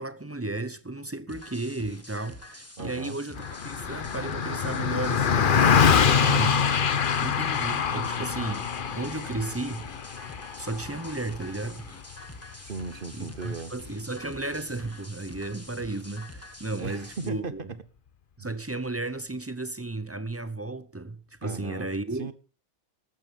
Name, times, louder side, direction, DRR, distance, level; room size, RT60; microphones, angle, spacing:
voice 1, 0.0-6.6 7.2-9.9 10.1-11.9 13.1-17.6 18.4-22.3, right 2 dB, 20° right, 0.4 m, -34 dB
sound 1, 1.3-17.3, left 1 dB, 10° left, 1.4 m, -46 dB
voice 2, 2.8-3.2 12.6-13.7 16.8-17.7 18.4-18.5 21.4-21.9 22.2-22.3, right 4 dB, 40° right, 1.1 m, -37 dB
Car passing by, 3.4-13.0, left 7 dB, 45° left, 0.8 m, -25 dB
13.5 x 12.5 x 5.3 m
omnidirectional pair, 1.5 m